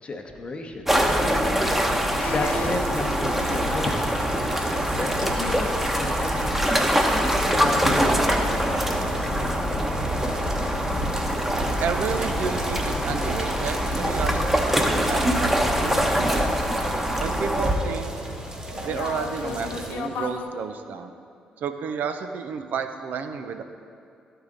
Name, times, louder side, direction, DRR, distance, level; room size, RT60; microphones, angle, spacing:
voice 1, 0.0-0.8 2.3-4.0 5.0-6.6 7.0-9.6, left 2 dB, 35° left, 3 dB, 0.9 m, -33 dB
sound 1, 0.9-17.8, equal, 5° right, 1.0 m, -24 dB
sound 2, 2.2-20.5, left 5 dB, 65° left, 0.5 m, -39 dB
sound 3, 2.4-19.9, right 1 dB, 25° right, 1.4 m, -34 dB
voice 2, 11.8-16.6 17.2-18.1 18.8-21.1 21.6-23.6, right 6 dB, 60° right, 8 dB, 0.5 m, -31 dB
12.5 x 4.7 x 3.8 m, 2.5 s
hypercardioid pair, 45°, 3 cm